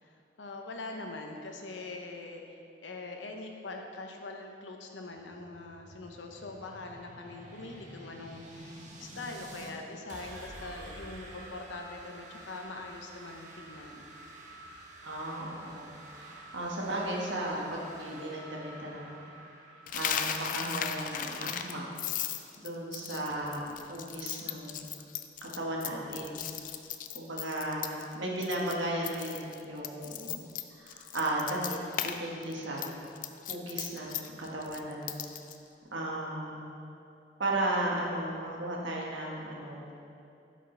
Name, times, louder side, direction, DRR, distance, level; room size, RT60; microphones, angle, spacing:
voice 1, 0.0-14.1, left 2 dB, 85° left, 3 dB, 0.9 m, -43 dB
sound 1, 5.2-9.7 10.1-21.7, right 1 dB, 45° right, 1.0 m, -50 dB
voice 2, 15.0-19.2 19.9-21.8 22.6-24.9 25.4-26.4 27.1-30.4 30.7-32.9 33.5-35.2 35.9-36.6 37.4-39.9, right 1 dB, 80° right, -3 dB, 1.4 m, -35 dB
Coin (dropping), 19.9-28.1 28.4-28.7 29.0-32.2 32.4-35.6, left 9 dB, 45° left, 0.4 m, -36 dB
12.0 x 5.1 x 3.9 m, 2.7 s
head